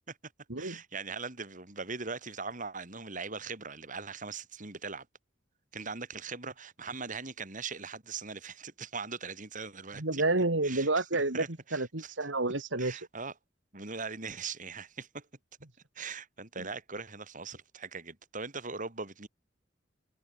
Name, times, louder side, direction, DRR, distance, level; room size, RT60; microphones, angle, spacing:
voice 1, 0.6-5.1 5.7-10.2 10.6-11.1 11.3-12.1 12.8-13.3 13.7-15.3 15.9-19.3, right 4 dB, 45° right, 3.2 m, -40 dB
voice 2, 10.0-11.4 11.7-13.0, right 2 dB, 75° right, 2.5 m, -29 dB
head